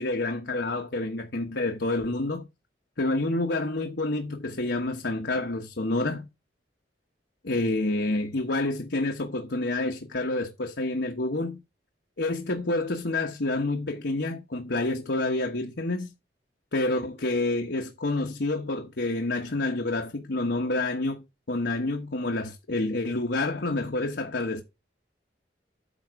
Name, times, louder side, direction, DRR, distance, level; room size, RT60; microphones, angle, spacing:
voice 1, 0.0-2.5 3.0-6.3 7.4-11.6 12.2-16.1 16.7-24.6, left 2 dB, 70° left, 1.1 m, -28 dB
9.2 x 5.8 x 4.7 m
head